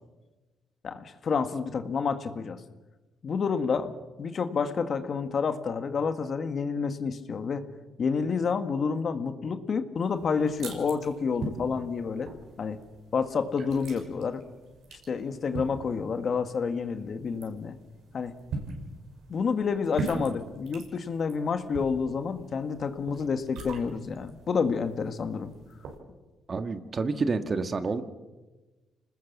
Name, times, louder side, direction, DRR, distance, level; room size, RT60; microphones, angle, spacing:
voice 1, 0.8-2.6 3.2-7.7 8.0-12.3 12.6-12.8 13.1-14.4 14.9-17.8 18.1-18.4 19.3-25.5, left 5 dB, 50° left, 8 dB, 1.8 m, -29 dB
sound 1, 10.0-26.0, right 3 dB, 75° right, 6.0 m, -42 dB
voice 2, 26.5-28.0, right 4 dB, 40° right, 9 dB, 1.7 m, -28 dB
26.5 x 19.5 x 7.4 m, 1.2 s
cardioid pair, 90°, 0 cm